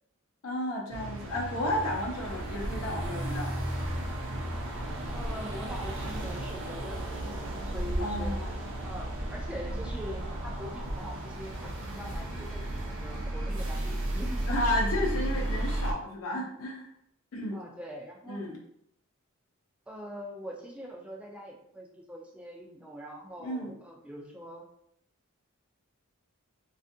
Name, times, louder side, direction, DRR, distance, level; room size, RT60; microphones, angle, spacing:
voice 1, 0.4-3.5 8.0-8.7 14.5-16.9 17.3-17.6 18.3-18.6 23.4-23.7, left 1 dB, 80° left, -2 dB, 0.6 m, -32 dB
sound 1, 0.9-15.9, right 1 dB, 60° right, 0.5 m, -34 dB
voice 2, 5.1-8.4 8.8-14.7 17.5-18.4 19.9-24.7, equal, 5° right, 0 dB, 0.3 m, -43 dB
2.5 x 2.4 x 2.5 m, 0.73 s
head